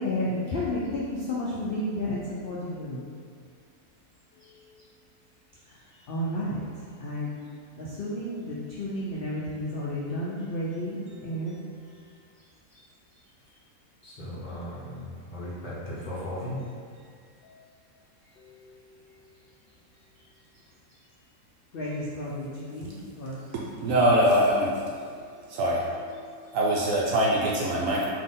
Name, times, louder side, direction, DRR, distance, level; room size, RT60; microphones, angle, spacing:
voice 1, 0.0-3.0 6.1-6.6 7.0-7.4 7.7-11.6 15.9-16.3 18.4-18.7 21.7-23.4 26.2-26.6, left 1 dB, 75° left, -6 dB, 0.5 m, -32 dB
voice 2, 14.0-16.6, left 1 dB, 40° left, -9 dB, 0.8 m, -37 dB
voice 3, 23.5-24.8 25.5-25.9 26.5-28.1, right 1 dB, 65° right, -4 dB, 0.8 m, -23 dB
4.1 x 2.8 x 3.6 m, 2.2 s
omnidirectional pair, 1.7 m